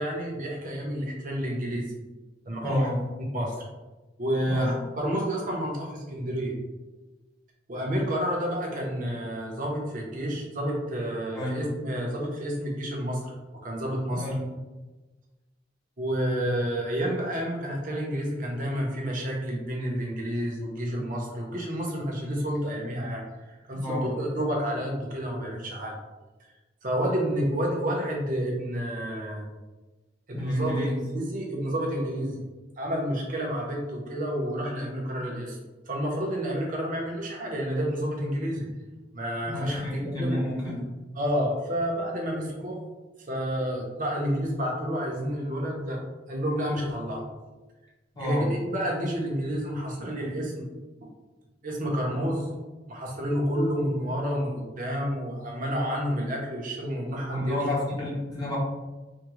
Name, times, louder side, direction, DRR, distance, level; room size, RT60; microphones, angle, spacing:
voice 1, 0.0-1.9 2.5-2.9 3.3-3.5 4.2-6.6 7.7-13.3 13.6-14.2 16.0-25.9 26.8-29.5 30.3-30.8 31.1-32.4 32.8-35.6 35.9-38.7 39.1-39.8 40.2-40.4 41.2-42.8 43.3-46.0 46.3-47.2 48.2-50.7 51.6-52.5 52.9-57.6, equal, 45° right, -1 dB, 0.7 m, -29 dB
voice 2, 2.6-3.0 4.5-4.8 11.3-11.6 14.1-14.5 23.7-24.1 30.3-31.0 39.5-40.9 48.2-48.5 57.3-58.6, left 1 dB, 20° left, -6 dB, 0.8 m, -30 dB
3.5 x 2.2 x 3.0 m, 1.2 s
head